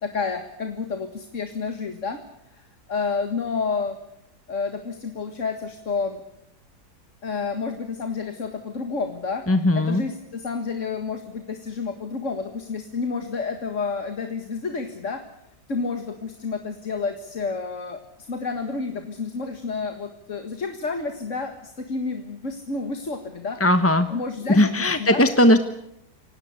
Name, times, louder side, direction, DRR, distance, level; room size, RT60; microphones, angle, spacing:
voice 1, 0.0-2.2 2.5-4.0 4.5-6.2 7.2-9.4 9.7-15.2 15.7-23.6 24.1-25.2, left 4 dB, 50° left, 6 dB, 2.0 m, -30 dB
voice 2, 9.5-10.0 23.6-24.1 24.6-25.6, left 1 dB, 10° left, 9 dB, 0.8 m, -18 dB
29.0 x 18.0 x 8.3 m, 0.80 s
omnidirectional pair, 1.8 m